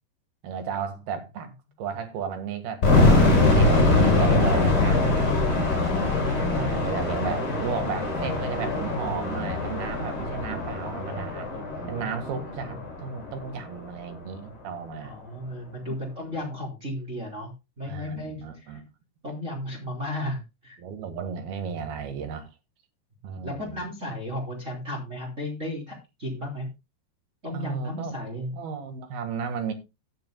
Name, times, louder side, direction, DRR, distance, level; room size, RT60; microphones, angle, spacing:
voice 1, 0.4-1.5 1.8-5.6 6.5-11.5 11.9-15.2 15.9-16.0 17.8-18.8 20.8-22.5 23.2-23.8 27.5-28.1 28.5-29.7, right 6 dB, 65° right, 3.3 m, -34 dB
sound 1, 2.8-13.7, left 2 dB, 20° left, 5.1 m, -23 dB
voice 2, 6.1-7.5 11.7-12.2 12.5-12.7 15.0-17.5 17.8-18.8 19.2-20.8 23.4-26.7 27.4-28.5, left 1 dB, 20° right, 3.0 m, -35 dB
16.5 x 9.5 x 2.2 m
omnidirectional pair, 5.1 m